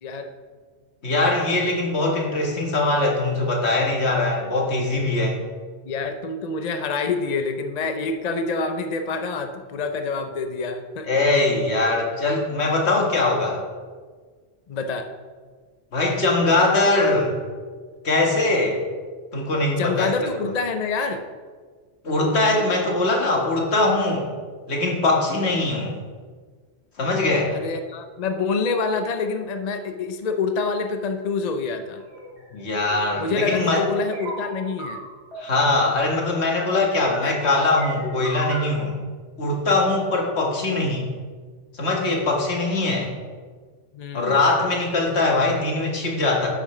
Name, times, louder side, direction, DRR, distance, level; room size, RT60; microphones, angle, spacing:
voice 1, 0.0-0.3 5.8-11.1 14.7-15.1 19.8-21.2 27.5-32.0 33.2-35.0 37.2-37.4 43.9-44.4, left 4 dB, 45° left, 6 dB, 0.6 m, -27 dB
voice 2, 1.0-5.4 11.1-13.6 15.9-17.3 18.0-18.8 19.3-20.1 22.0-24.3 24.7-25.9 27.0-27.5 32.5-33.9 35.4-38.9 39.4-41.1 41.8-43.1 44.1-46.5, left 2 dB, 70° left, 0 dB, 1.8 m, -21 dB
sound 1, 32.0-32.4 32.9-35.5 36.0-36.8 37.0-38.7, equal, 80° right, 3.3 m, -36 dB
10.5 x 8.5 x 3.2 m, 1.6 s
omnidirectional pair, 1.1 m